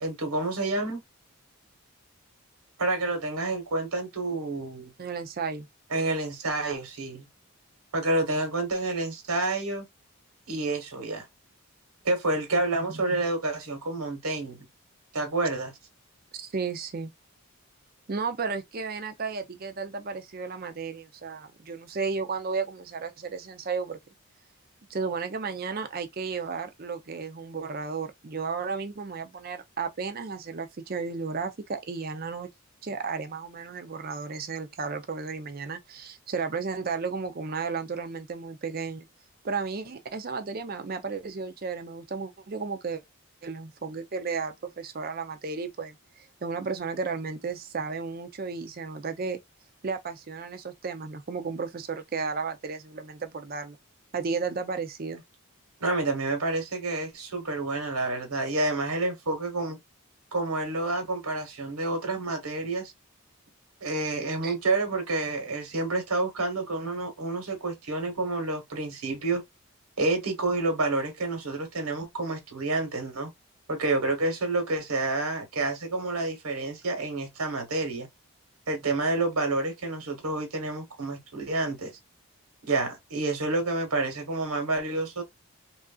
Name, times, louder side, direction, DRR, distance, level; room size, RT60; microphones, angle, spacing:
voice 1, 0.0-1.0 2.8-4.9 5.9-7.3 7.9-9.9 10.5-11.3 12.0-14.7 15.1-15.7 55.8-59.8 60.3-62.9 63.8-69.4 70.0-73.3 73.7-78.1 78.7-81.9 82.6-85.2, right 2 dB, 90° right, 1.1 m, -29 dB
voice 2, 5.0-5.7 12.5-13.2 16.3-17.1 18.1-24.0 24.9-32.5 32.8-39.1 39.4-43.0 43.4-49.4 49.8-53.8 54.1-55.2 64.4-64.5, right 5 dB, 40° right, 0.5 m, -33 dB
3.1 x 2.5 x 2.3 m
head